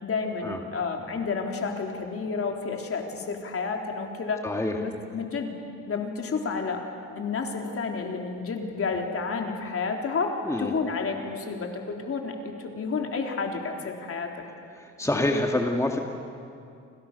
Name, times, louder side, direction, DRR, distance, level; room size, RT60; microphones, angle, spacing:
voice 1, 0.0-4.4 4.8-5.5 5.9-6.8 7.2-14.3, left 4 dB, 50° left, 2 dB, 3.9 m, -30 dB
voice 2, 4.4-4.8 10.4-10.7 14.7-16.0, left 1 dB, 10° left, 2 dB, 2.2 m, -26 dB
29.5 x 26.0 x 6.9 m, 2.4 s
cardioid pair, 90°, 30 cm